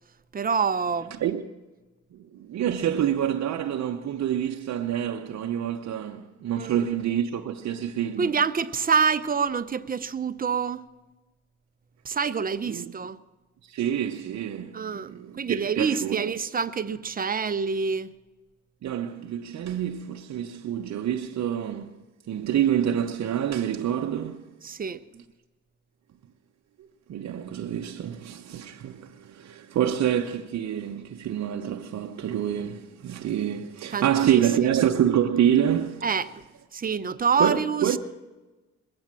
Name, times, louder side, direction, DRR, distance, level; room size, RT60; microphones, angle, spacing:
voice 1, 0.3-1.2 6.6-6.9 8.2-10.9 12.0-13.2 14.7-18.1 24.6-25.2 33.9-34.4 36.0-36.4 36.7-38.0, right 5 dB, 30° right, 0.7 m, -27 dB
voice 2, 2.1-8.3 12.6-12.9 13.6-16.2 18.8-21.9 22.3-24.4 27.1-36.0 37.4-38.0, right 10 dB, 60° right, 0.8 m, -27 dB
21.5 x 8.8 x 7.4 m
cardioid pair, 90°, 30 cm